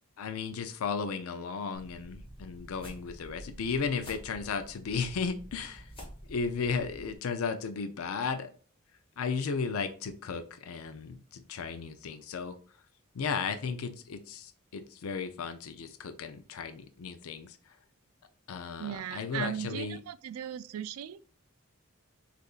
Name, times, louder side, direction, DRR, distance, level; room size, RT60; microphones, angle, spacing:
voice 1, 0.2-5.9 6.3-8.5 9.2-12.6 13.1-17.6 18.5-20.0, left 5 dB, 70° left, 0.4 m, -35 dB
sound 1, 1.7-7.2, equal, 25° left, 1.4 m, -48 dB
voice 2, 18.8-21.2, right 10 dB, 75° right, 0.3 m, -37 dB
6.4 x 2.5 x 2.4 m
head